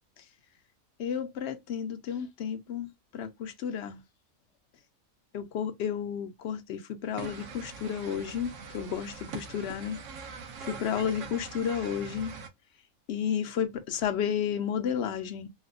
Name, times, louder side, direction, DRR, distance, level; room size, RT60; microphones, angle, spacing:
voice 1, 1.0-4.0 5.3-10.0 10.6-12.3 13.1-15.5, left 8 dB, 65° left, 0.8 m, -32 dB
sound 1, 7.2-12.5, right 5 dB, 70° right, 1.1 m, -43 dB
4.0 x 2.1 x 2.4 m
omnidirectional pair, 1.4 m